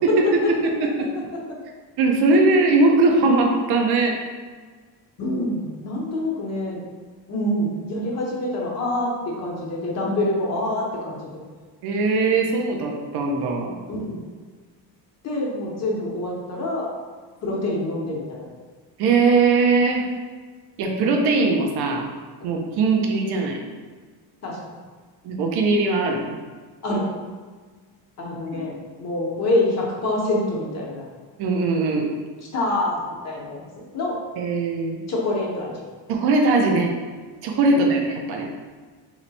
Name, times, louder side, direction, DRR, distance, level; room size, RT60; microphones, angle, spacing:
voice 1, 0.0-1.1 2.0-4.2 11.8-13.8 19.0-20.1 20.8-22.1 22.4-23.6 25.2-26.4 28.5-28.6 31.4-32.1 34.4-35.0 36.1-36.9 37.4-38.5, right 3 dB, 60° right, 1 dB, 0.7 m, -20 dB
voice 2, 5.2-6.8 7.3-11.2 13.9-14.2 15.2-16.9 17.4-18.4 22.4-22.6 24.4-24.6 26.8-27.1 28.2-31.0 32.5-33.6 33.9-34.2 35.1-35.7 37.7-37.8, left 1 dB, 35° left, -3 dB, 0.9 m, -26 dB
3.1 x 3.0 x 4.0 m, 1.5 s
cardioid pair, 150°, 44 cm